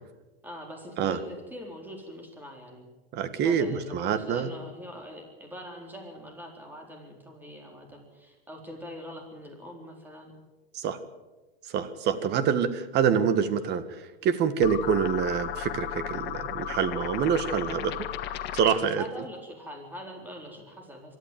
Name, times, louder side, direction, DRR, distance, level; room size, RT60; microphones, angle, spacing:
voice 1, 0.4-2.9 3.4-10.4 12.1-12.4 19.0-21.2, equal, 5° right, 2 dB, 4.0 m, -43 dB
voice 2, 3.1-4.5 10.7-11.0 11.7-18.0 18.5-19.0, right 7 dB, 35° right, 11 dB, 1.8 m, -26 dB
sound 1, 14.6-19.0, left 11 dB, 35° left, 1.5 m, -35 dB
24.0 x 13.5 x 9.1 m, 1.1 s
hypercardioid pair, 130°, 31 cm